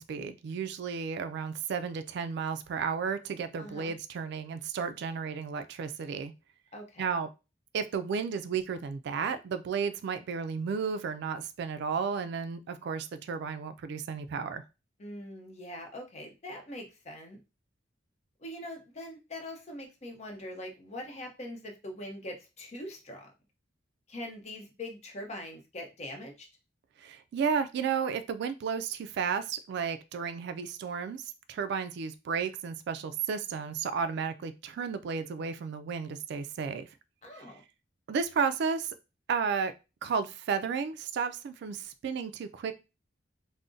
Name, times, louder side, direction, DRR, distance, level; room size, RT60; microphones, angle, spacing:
voice 1, 0.0-6.3 7.0-7.3 7.7-14.6 27.0-31.2 31.5-36.9 37.4-37.5 38.1-38.9 39.3-39.7 40.0-42.7, right 6 dB, 60° right, 11 dB, 0.3 m, -33 dB
voice 2, 3.6-3.9 6.7-7.1 15.0-17.4 18.4-23.3 24.1-26.5 37.2-37.6, left 1 dB, 35° left, 2 dB, 0.7 m, -42 dB
2.5 x 2.0 x 3.7 m, 0.28 s
head